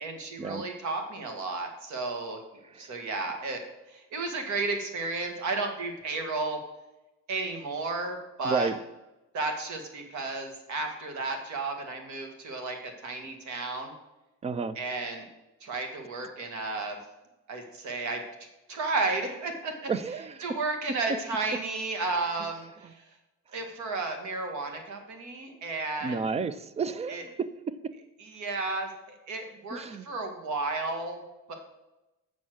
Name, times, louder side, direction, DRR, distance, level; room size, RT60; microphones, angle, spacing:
voice 1, 0.0-2.4 2.8-3.6 3.9-6.6 7.3-8.7 9.3-13.9 14.8-15.3 15.6-17.0 17.5-18.2 18.7-19.9 20.4-23.0 23.5-26.3 27.1-27.2 28.2-31.2 31.5-31.6, right 3 dB, 70° right, 5 dB, 1.8 m, -33 dB
voice 2, 2.7-3.1 8.4-8.8 14.4-14.8 19.9-20.4 22.4-22.5 26.0-27.3 29.7-30.1, right 5 dB, 20° right, 14 dB, 0.3 m, -32 dB
7.2 x 6.3 x 6.2 m, 1.0 s
cardioid pair, 165°, 30 cm